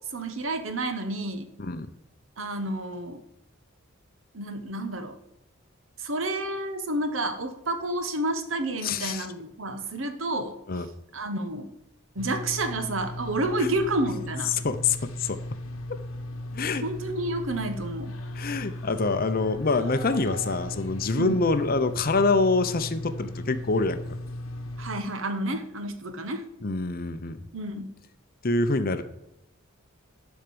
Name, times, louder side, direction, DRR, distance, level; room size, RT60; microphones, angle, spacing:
voice 1, 0.0-1.5 2.4-3.2 4.3-5.2 6.0-10.6 11.1-11.7 12.1-14.5 16.8-18.2 21.2-21.4 24.8-26.4 27.5-28.0, right 1 dB, 65° right, 9 dB, 1.1 m, -30 dB
voice 2, 8.8-9.3 10.7-10.9 13.6-13.7 14.5-15.4 16.5-16.8 18.3-24.0 26.6-27.4 28.4-29.0, left 3 dB, 45° left, 10 dB, 0.7 m, -25 dB
sound 1, 12.2-25.0, left 1 dB, 70° left, 1.0 m, -37 dB
sound 2, 19.0-21.3, right 2 dB, 85° right, 1.5 m, -42 dB
11.0 x 4.5 x 6.9 m, 0.87 s
head